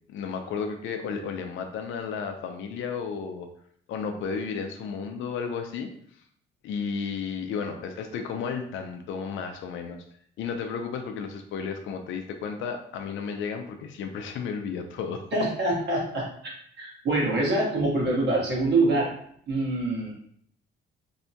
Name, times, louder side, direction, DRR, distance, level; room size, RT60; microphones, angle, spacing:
voice 1, 0.1-3.5 3.9-5.9 6.6-10.0 10.4-15.4, left 6 dB, 75° left, 5 dB, 0.4 m, -33 dB
voice 2, 15.3-16.3 16.8-19.1 19.5-20.1, right 2 dB, 60° right, -3 dB, 1.0 m, -25 dB
2.7 x 2.1 x 2.7 m, 0.63 s
cardioid pair, 90°, 20 cm